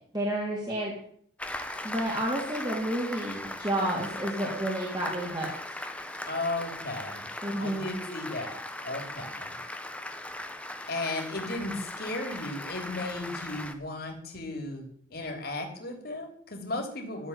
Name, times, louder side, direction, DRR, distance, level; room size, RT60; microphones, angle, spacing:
voice 1, 0.1-0.9 1.8-5.5 7.4-7.9, right 1 dB, 20° right, -4 dB, 3.0 m, -30 dB
Applause, 1.4-13.7, left 1 dB, 5° left, 1.2 m, -39 dB
voice 2, 6.3-7.2 7.6-9.6 10.9-17.3, left 2 dB, 50° left, 4 dB, 3.3 m, -35 dB
13.5 x 7.7 x 9.8 m, 0.63 s
head